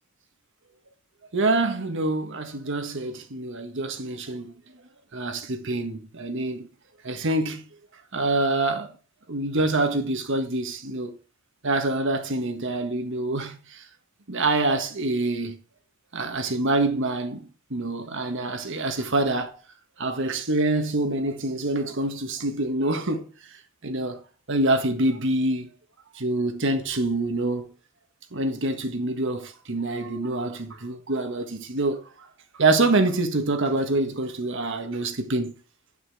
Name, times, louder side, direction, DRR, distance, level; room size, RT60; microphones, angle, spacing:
voice 1, 1.3-4.5 5.1-6.7 7.0-7.6 8.1-8.9 9.3-11.2 11.6-13.8 14.3-15.6 16.1-19.5 20.0-23.3 23.8-24.2 24.5-25.7 26.1-27.7 28.3-32.0 32.6-35.5, right 2 dB, 60° right, 1.5 m, -26 dB
9.7 x 6.0 x 4.8 m
head